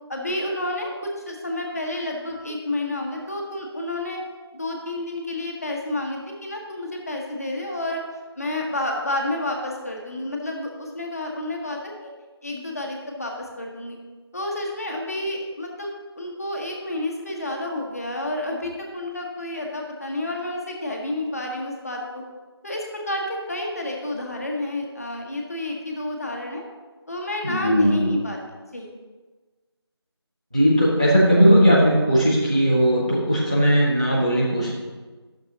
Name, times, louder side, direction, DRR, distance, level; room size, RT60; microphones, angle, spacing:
voice 1, 0.1-4.2 4.5-8.0 8.4-12.1 12.4-14.0 14.3-22.2 22.6-26.6 27.1-28.4 28.7-28.9, left 1 dB, 35° left, 0 dB, 1.2 m, -30 dB
voice 2, 27.4-28.2 30.5-34.7, equal, 15° right, -6 dB, 0.5 m, -18 dB
12.0 x 6.6 x 2.9 m, 1.3 s
figure-of-eight pair, 170°, 14 cm